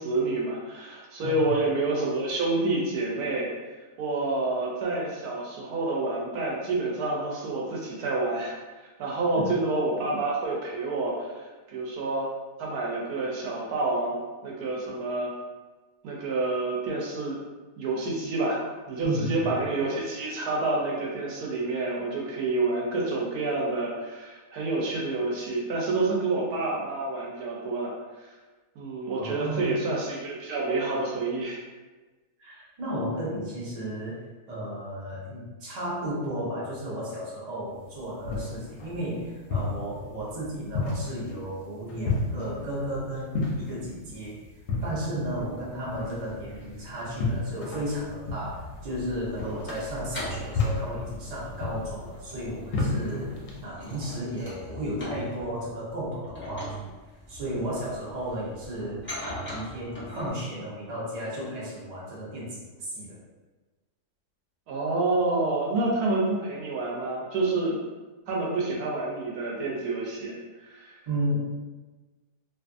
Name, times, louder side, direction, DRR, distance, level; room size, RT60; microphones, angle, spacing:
voice 1, 0.0-3.5 4.0-8.6 9.0-12.3 12.6-14.2 14.4-15.3 16.0-17.4 17.8-18.6 18.9-27.9 28.2-28.3 28.8-31.6 45.6-45.7 64.7-67.8 68.3-71.0, right 2 dB, 75° right, -3 dB, 1.1 m, -28 dB
voice 2, 19.0-19.5 29.2-29.8 32.4-44.4 44.8-56.9 57.3-63.2 71.1-71.3, right 1 dB, 40° right, -7 dB, 0.5 m, -34 dB
sound 1, 37.7-53.6, left 3 dB, 65° left, 0.8 m, -33 dB
sound 2, 45.2-47.3 47.8-60.3, equal, 15° left, 0.4 m, -42 dB
2.6 x 2.4 x 2.4 m, 1.2 s
omnidirectional pair, 1.7 m